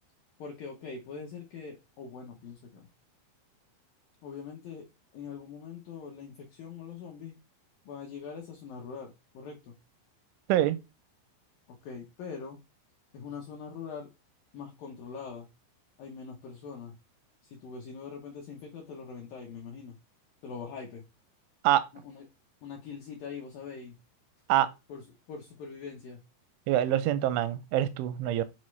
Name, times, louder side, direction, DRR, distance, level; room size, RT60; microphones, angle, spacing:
voice 1, 0.4-2.9 4.2-4.9 5.1-7.4 7.9-9.7 11.7-12.6 13.1-14.1 14.5-15.5 16.0-16.9 17.4-20.0 20.4-21.0 22.0-22.2 22.6-24.0 24.9-26.2, left 5 dB, 80° left, 2.0 m, -43 dB
voice 2, 26.7-28.4, right 12 dB, 85° right, 3.0 m, -25 dB
7.2 x 4.3 x 3.2 m
omnidirectional pair, 5.4 m